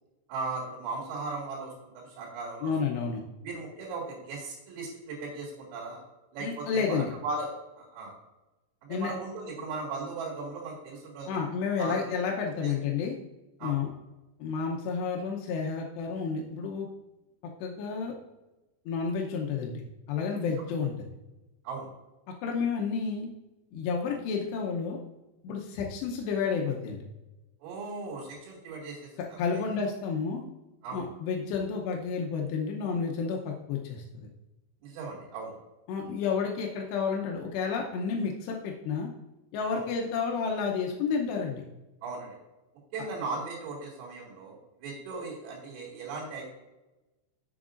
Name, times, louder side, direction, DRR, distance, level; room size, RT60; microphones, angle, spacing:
voice 1, 0.3-2.7 3.4-6.0 6.3-7.5 7.8-8.1 8.9-11.4 11.8-12.0 12.6-12.8 13.6-13.8 21.6-21.9 27.6-29.1 29.5-29.6 30.8-31.0 34.8-35.6 39.7-39.8 42.0-42.4 42.9-46.4, right 3 dB, 80° right, -2 dB, 4.5 m, -37 dB
voice 2, 2.6-3.2 6.4-7.1 8.9-9.1 11.3-13.2 13.6-13.9 14.4-16.9 17.6-18.1 18.9-19.8 20.1-20.9 22.4-23.3 23.7-25.0 25.4-27.0 29.4-30.4 30.9-34.3 35.9-39.1 39.5-41.6, left 5 dB, 85° left, 0 dB, 2.4 m, -30 dB
11.0 x 8.1 x 2.5 m, 1.1 s
omnidirectional pair, 6.0 m